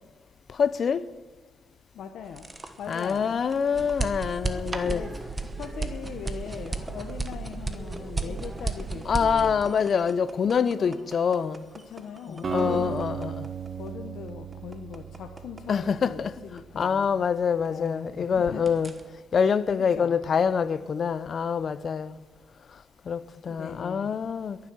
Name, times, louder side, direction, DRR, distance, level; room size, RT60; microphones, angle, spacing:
voice 1, 0.5-1.1 2.9-5.1 9.0-11.6 12.3-13.5 15.7-16.4 16.7-18.9 19.3-22.2 22.7-24.6, left 6 dB, 50° left, 0.6 m, -26 dB
voice 2, 1.9-2.5 2.8-3.4 4.8-9.6 10.8-11.0 11.9-13.0 13.8-17.1 17.7-18.9 19.9-20.2 23.5-24.2, left 7 dB, 70° left, 1.0 m, -40 dB
sound 1, 2.2-18.1 18.4-19.0, right 3 dB, 20° right, 1.2 m, -35 dB
Acoustic guitar, 12.4-16.5, right 6 dB, 40° right, 1.4 m, -35 dB
22.0 x 7.6 x 6.1 m
cardioid pair, 90°, 0 cm